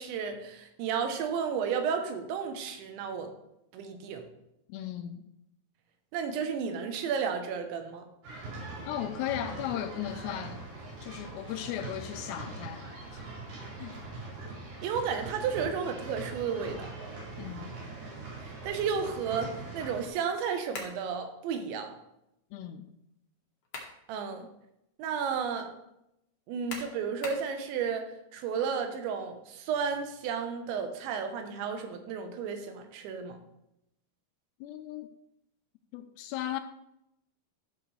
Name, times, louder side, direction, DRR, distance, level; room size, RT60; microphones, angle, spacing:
voice 1, 0.0-3.3 3.7-4.3 6.1-8.1 14.8-16.9 18.4-21.9 24.1-24.5 25.0-25.7 26.5-33.4, right 6 dB, 90° right, 3.3 m, -33 dB
voice 2, 4.7-5.2 8.9-10.6 11.0-12.9 13.8-14.0 17.4-17.7 22.5-22.9 34.6-35.1 35.9-36.6, left 11 dB, 85° left, 2.6 m, -36 dB
sound 1, 8.2-20.1, right 3 dB, 60° right, 5.5 m, -42 dB
sound 2, 20.7-21.0 23.4-24.0 24.5-24.6 26.7-27.5, left 3 dB, 65° left, 1.6 m, -41 dB
13.5 x 6.2 x 3.3 m
omnidirectional pair, 5.1 m